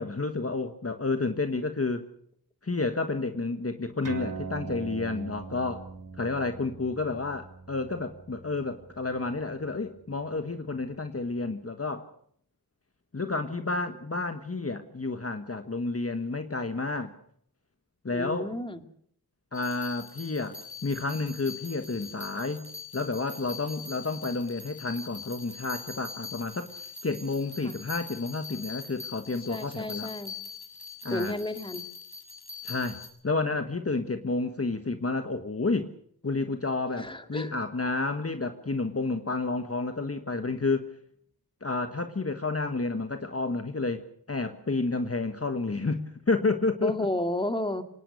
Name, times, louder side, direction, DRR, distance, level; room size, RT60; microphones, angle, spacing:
voice 1, 0.0-2.1 2.6-5.9 6.1-12.1 13.1-17.1 18.0-18.5 19.5-22.7 22.9-26.7 27.0-30.1 31.0-31.3 32.6-35.9 36.2-40.9 41.6-44.0 44.3-47.1, left 3 dB, 35° left, 8 dB, 1.4 m, -30 dB
sound 1, 4.0-11.0, right 5 dB, 55° right, 3.2 m, -42 dB
voice 2, 18.1-18.8 27.6-27.8 29.5-30.4 31.1-31.8 37.0-37.5 46.8-47.8, left 1 dB, 15° left, 8 dB, 2.2 m, -32 dB
sound 2, 19.5-33.1, left 4 dB, 70° left, 7.5 m, -43 dB
25.5 x 19.0 x 6.7 m, 0.65 s
wide cardioid pair, 85°, 39 cm